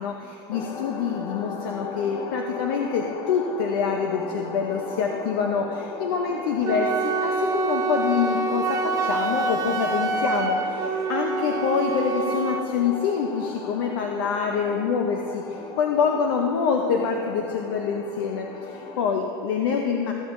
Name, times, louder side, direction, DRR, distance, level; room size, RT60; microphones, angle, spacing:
voice 1, 0.0-20.1, left 6 dB, 90° left, 2 dB, 0.7 m, -26 dB
sound 1, 0.5-19.1, left 5 dB, 30° left, 0.6 m, -37 dB
Wind instrument woodwind instrument, 6.6-12.7, right 4 dB, 30° right, 0.5 m, -26 dB
14.5 x 7.9 x 2.6 m, 2.7 s
supercardioid pair, 155°, 12 cm